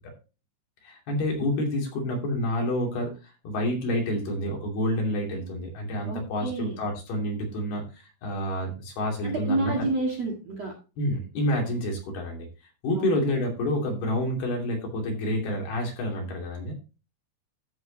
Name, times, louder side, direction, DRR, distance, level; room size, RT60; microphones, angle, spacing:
voice 1, 0.8-9.9 11.0-12.5 12.8-16.7, left 1 dB, 55° left, 0 dB, 4.4 m, -28 dB
voice 2, 6.1-6.8 9.2-10.7 13.0-13.1, right 2 dB, 45° right, 0 dB, 2.3 m, -29 dB
14.0 x 7.7 x 2.8 m, 0.32 s
omnidirectional pair, 5.6 m